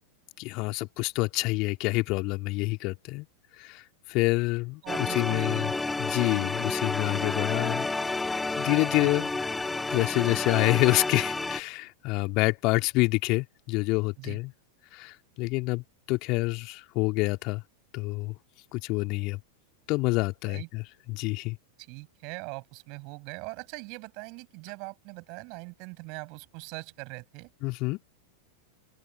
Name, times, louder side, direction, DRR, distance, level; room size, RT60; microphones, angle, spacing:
voice 1, 0.4-3.3 3.6-5.7 6.0-7.9 8.6-9.3 9.9-14.5 14.9-17.6 17.9-18.3 18.7-19.4 19.9-20.8 21.1-21.6 27.6-28.0, left 24 dB, 40° left, 2.9 m, -27 dB
voice 2, 4.8-5.8 9.0-9.1 14.2-14.4 20.5-20.7 21.9-27.5, right 32 dB, 45° right, 7.0 m, -41 dB
sound 1, 4.9-11.6, left 3 dB, 10° left, 2.2 m, -30 dB
open air
figure-of-eight pair, 90°, 0 cm